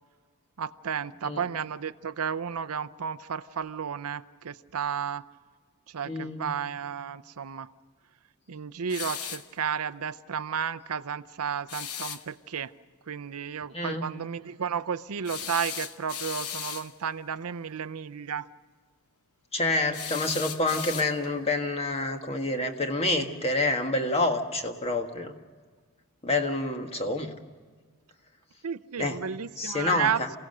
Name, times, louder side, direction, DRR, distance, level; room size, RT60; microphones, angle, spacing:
voice 1, 0.6-5.3 5.9-7.7 8.5-12.7 13.1-18.5 28.6-30.4, right 7 dB, 70° right, 15 dB, 0.6 m, -33 dB
voice 2, 6.0-6.5 13.7-14.1 19.5-25.3 26.2-27.3 29.0-29.2 29.6-30.3, left 2 dB, 25° left, 5 dB, 1.7 m, -28 dB
sound 1, 8.9-9.5 11.7-12.2 15.2-16.9 19.9-21.4, left 9 dB, 75° left, 1.0 m, -36 dB
28.0 x 17.0 x 6.7 m, 1.5 s
head